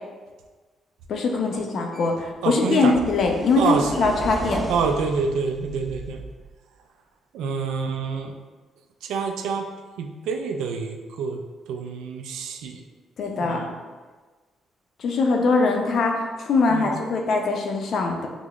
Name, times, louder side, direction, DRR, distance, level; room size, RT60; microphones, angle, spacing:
voice 1, 1.1-4.6 13.2-13.6 15.0-18.3, left 3 dB, 60° left, 2 dB, 0.5 m, -22 dB
sound 1, 1.9-2.1 2.7-6.5, right 2 dB, 15° right, 0.4 m, -34 dB
voice 2, 2.4-2.9 3.5-4.3 4.7-6.2 7.3-8.3 9.0-9.6 10.0-11.4 11.7-12.8 13.4-13.7 16.7-16.9, right 5 dB, 90° right, 5 dB, 0.3 m, -27 dB
4.9 x 2.0 x 2.3 m, 1.3 s
cardioid pair, 90°, 0 cm